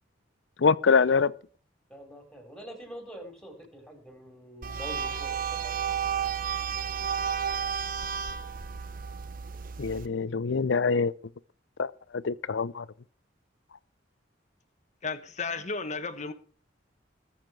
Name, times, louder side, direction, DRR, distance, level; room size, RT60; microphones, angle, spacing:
voice 1, 0.6-1.3 9.8-11.1 11.8-11.9 12.2-12.8, left 5 dB, 75° left, 0.6 m, -24 dB
voice 2, 1.9-5.7, right 1 dB, 5° left, 4.3 m, -45 dB
sound 1, 4.6-10.1, right 7 dB, 50° right, 1.0 m, -32 dB
voice 3, 15.0-16.3, left 4 dB, 40° left, 1.2 m, -33 dB
21.0 x 7.3 x 4.7 m
head